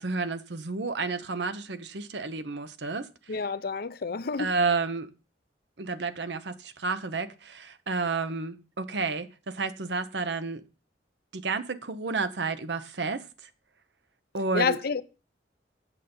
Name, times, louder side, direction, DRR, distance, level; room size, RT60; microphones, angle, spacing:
voice 1, 0.0-3.1 4.4-5.1 5.8-10.6 11.3-13.2 14.3-14.8, right 4 dB, 80° right, 0.9 m, -31 dB
voice 2, 3.3-4.6 14.5-15.0, left 5 dB, 60° left, 0.6 m, -29 dB
8.3 x 6.7 x 5.4 m
head